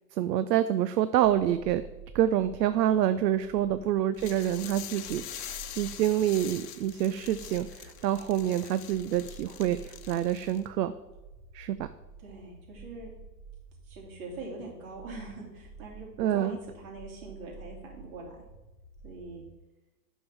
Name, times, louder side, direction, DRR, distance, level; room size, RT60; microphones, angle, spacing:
voice 1, 0.1-1.8 2.1-10.9 11.5-11.9 16.2-16.6, right 11 dB, 75° right, 13 dB, 0.6 m, -27 dB
sound 1, 1.2-19.5, right 3 dB, 15° right, 2.2 m, -50 dB
voice 2, 3.6-3.9 12.2-13.1 13.9-18.4 19.0-19.4, right 3 dB, 55° right, -1 dB, 2.9 m, -43 dB
sound 2, 4.2-10.7, left 10 dB, 65° left, 1.0 m, -44 dB
8.6 x 6.3 x 3.5 m, 1.1 s
hypercardioid pair, 130°, 50 cm